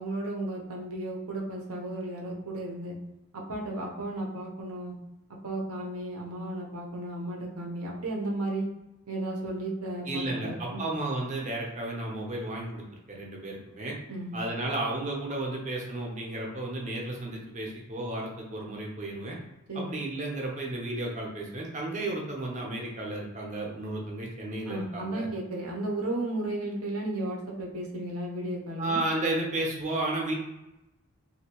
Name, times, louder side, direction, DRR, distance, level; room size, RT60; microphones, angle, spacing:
voice 1, 0.0-3.0 3.3-4.9 5.4-8.7 9.1-10.9 14.1-14.3 19.7-20.0 24.7-29.0, right 1 dB, 85° right, 0 dB, 0.8 m, -34 dB
voice 2, 10.1-12.8 13.1-14.0 14.3-19.4 19.7-25.3 28.8-30.3, right 2 dB, 35° right, -1 dB, 0.7 m, -33 dB
2.7 x 2.7 x 2.9 m, 0.96 s
head